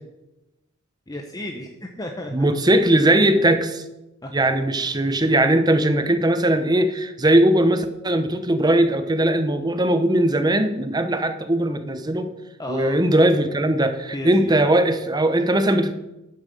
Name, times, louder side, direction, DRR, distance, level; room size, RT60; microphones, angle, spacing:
voice 1, 1.1-2.5 4.2-4.5 4.8-4.9 12.6-13.0 14.1-14.5, left 1 dB, 15° left, 3 dB, 0.8 m, -33 dB
voice 2, 2.3-3.8 4.3-12.3 12.7-15.9, right 1 dB, 20° right, 9 dB, 0.8 m, -19 dB
9.9 x 7.3 x 6.9 m, 0.96 s
head